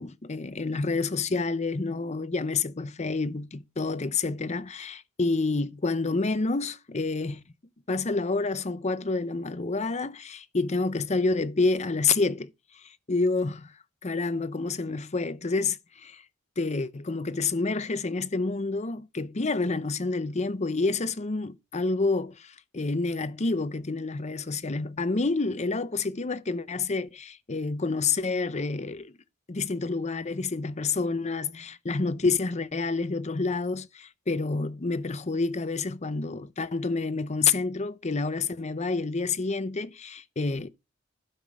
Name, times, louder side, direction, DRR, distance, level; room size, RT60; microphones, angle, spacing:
voice 1, 0.0-7.4 7.9-12.5 12.7-13.7 14.0-16.2 16.6-29.1 29.5-40.7, left 3 dB, 35° left, 0.7 m, -28 dB
11.5 x 5.9 x 5.0 m
head